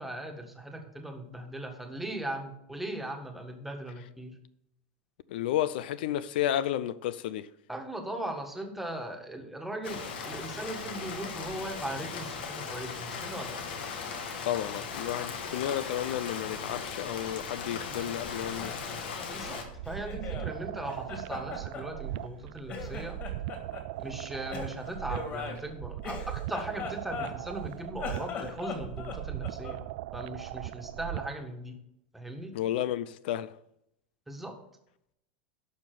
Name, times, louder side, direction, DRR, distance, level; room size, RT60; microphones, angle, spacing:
voice 1, 0.0-4.3 7.7-13.6 19.3-23.2 24.0-29.8 30.1-31.8 32.1-32.5 34.3-34.5, right 1 dB, 5° right, 1.6 m, -39 dB
voice 2, 5.3-7.5 14.4-18.7 32.5-33.5, left 12 dB, 70° left, 0.5 m, -32 dB
Rain, 9.8-19.6, left 5 dB, 85° left, 2.2 m, -38 dB
Laughter, 18.2-20.5 20.9-22.4 22.7-23.9 24.5-27.6 27.9-29.9, left 5 dB, 30° left, 2.9 m, -40 dB
sound 1, 19.4-31.4, right 16 dB, 55° right, 0.4 m, -39 dB
12.0 x 5.7 x 7.8 m
supercardioid pair, 150°, 5 cm